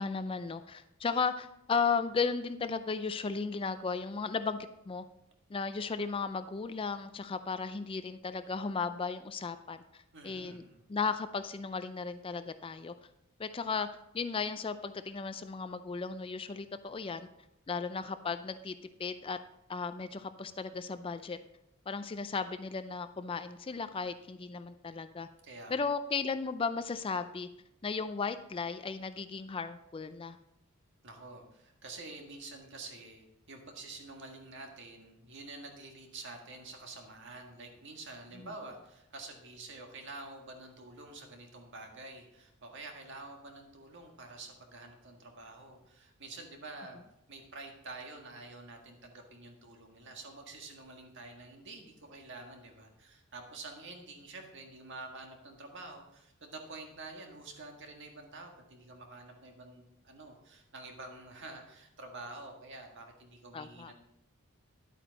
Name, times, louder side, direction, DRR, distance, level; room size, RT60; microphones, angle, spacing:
voice 1, 0.0-5.0 5.5-10.6 10.9-12.9 13.4-13.9 14.1-17.3 17.7-18.7 19.0-19.4 19.7-21.4 21.9-25.3 25.7-27.5 27.8-30.4 38.4-38.5 63.5-63.9, left 5 dB, 25° left, 11 dB, 0.4 m, -35 dB
voice 2, 10.1-10.8 25.4-25.8 31.0-47.0 47.3-63.9, right 3 dB, 55° right, 3 dB, 1.7 m, -48 dB
11.0 x 8.6 x 4.0 m, 0.82 s
head